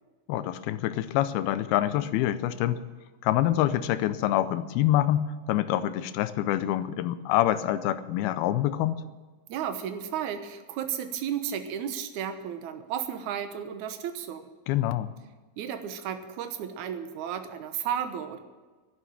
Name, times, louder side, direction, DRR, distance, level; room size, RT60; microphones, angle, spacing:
voice 1, 0.3-2.8 3.2-9.0 14.7-15.1, left 13 dB, 85° left, 13 dB, 2.5 m, -26 dB
voice 2, 9.5-14.5 15.6-18.4, right 9 dB, 65° right, 8 dB, 2.0 m, -33 dB
11.5 x 11.0 x 8.8 m, 1.3 s
omnidirectional pair, 4.5 m